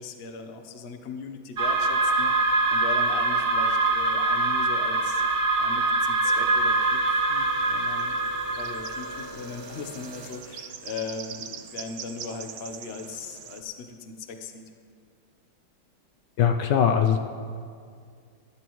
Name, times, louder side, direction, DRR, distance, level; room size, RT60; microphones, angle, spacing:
voice 1, 0.0-5.2 5.6-14.7, left 4 dB, 50° left, 6 dB, 0.7 m, -39 dB
sound 1, 1.6-9.3, right 3 dB, 65° right, 0.5 m, -24 dB
sound 2, 6.2-10.7, right 1 dB, 20° right, 2.3 m, -43 dB
sound 3, 7.4-13.6, right 8 dB, 90° right, 1.6 m, -43 dB
voice 2, 16.4-17.2, left 8 dB, 70° left, 5 dB, 1.2 m, -21 dB
20.0 x 11.0 x 3.1 m, 2.2 s
omnidirectional pair, 2.3 m